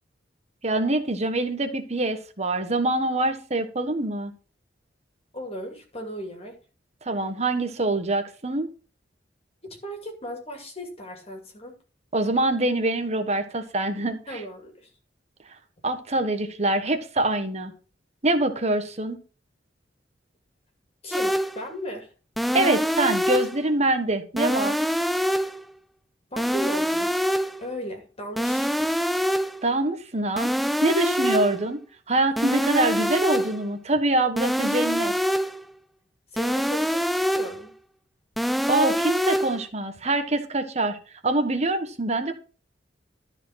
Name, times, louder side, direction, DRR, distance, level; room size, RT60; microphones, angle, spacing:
voice 1, 0.6-4.3 7.0-8.7 12.1-14.4 15.8-17.7 18.2-19.2 22.5-24.8 29.6-30.5 30.8-31.8 32.1-35.1 38.7-41.0 41.2-42.3, right 2 dB, 40° right, 8 dB, 1.4 m, -25 dB
voice 2, 5.3-6.6 9.6-11.7 14.3-14.9 21.0-22.1 26.3-27.2 27.6-28.9 36.3-37.7, equal, 35° left, 2 dB, 2.4 m, -36 dB
sound 1, 21.1-21.6 22.4-23.6 24.4-25.6 26.4-27.6 28.4-29.6 30.4-31.6 32.4-33.6 34.4-35.6 36.4-37.6 38.4-39.6, equal, ahead, 0.4 m, -25 dB
13.0 x 4.9 x 5.8 m, 0.36 s
head